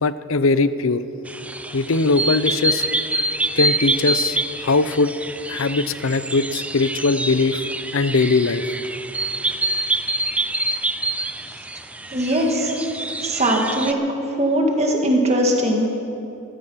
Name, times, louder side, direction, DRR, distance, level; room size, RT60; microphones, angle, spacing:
voice 1, 0.0-1.0 1.7-2.9 3.6-5.1 5.5-7.6 7.9-8.7, left 3 dB, 65° left, 14 dB, 0.6 m, -20 dB
sound 1, 1.3-13.9, right 2 dB, 5° right, 0.3 m, -26 dB
voice 2, 12.1-12.7 13.2-14.0 14.3-16.0, right 1 dB, 30° right, 1 dB, 1.9 m, -20 dB
15.5 x 13.5 x 5.8 m, 2.7 s
head